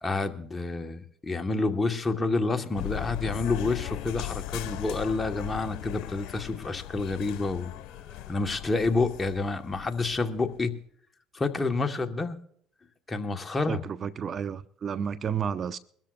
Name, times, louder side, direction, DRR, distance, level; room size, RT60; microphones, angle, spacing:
voice 1, 0.0-7.7 8.3-10.7 11.3-12.4 13.1-13.8, left 3 dB, 25° left, 1.4 m, -28 dB
sound 1, 2.7-10.6, left 15 dB, 70° left, 1.4 m, -38 dB
voice 2, 13.7-15.8, right 7 dB, 45° right, 0.6 m, -31 dB
23.0 x 13.5 x 2.5 m
supercardioid pair, 80°, 0 cm